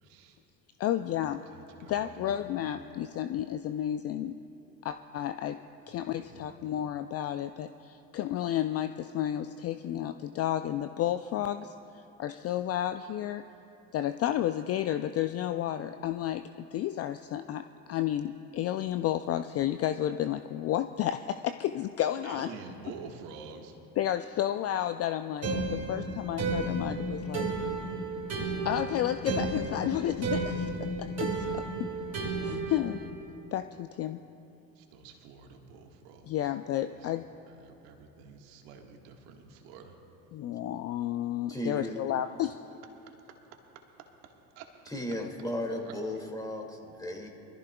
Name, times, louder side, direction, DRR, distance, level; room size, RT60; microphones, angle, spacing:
voice 1, 0.0-0.4 1.4-2.9 5.8-6.5 22.2-23.8 34.8-36.6 36.9-37.2 37.5-40.0 42.8-42.9 43.8-45.2 45.7-46.2, right 5 dB, 65° right, 3 dB, 1.7 m, -49 dB
voice 2, 0.8-1.4 1.9-4.3 4.8-5.6 5.9-11.7 12.2-13.4 13.9-22.5 24.0-27.5 28.6-31.6 32.4-33.0 33.5-34.2 36.3-37.2 40.3-42.5, left 11 dB, 35° left, 10 dB, 0.4 m, -31 dB
sound 1, 25.4-33.1, right 2 dB, 35° right, 2.2 m, -33 dB
voice 3, 41.5-42.0 44.9-47.3, left 1 dB, 10° left, 1 dB, 2.2 m, -35 dB
24.5 x 14.5 x 2.3 m, 2.9 s
hypercardioid pair, 70°, 46 cm